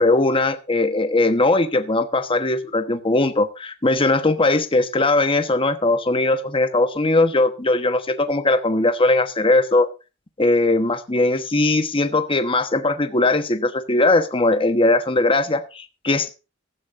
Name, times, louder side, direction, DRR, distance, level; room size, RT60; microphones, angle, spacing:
voice 1, 0.0-9.9 10.4-16.3, left 2 dB, 25° left, 1.1 m, -19 dB
15.5 x 13.5 x 2.6 m
head